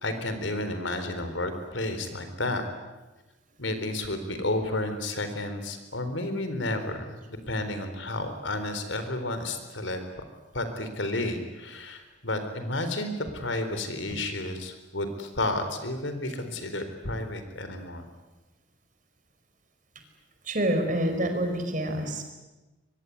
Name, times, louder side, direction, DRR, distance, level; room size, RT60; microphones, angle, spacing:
voice 1, 0.0-2.6 3.6-7.2 7.5-10.2 10.5-18.0, left 2 dB, 85° left, 8 dB, 4.0 m, -31 dB
voice 2, 20.5-22.3, right 1 dB, 45° right, 6 dB, 4.9 m, -27 dB
24.0 x 22.5 x 9.9 m, 1.1 s
head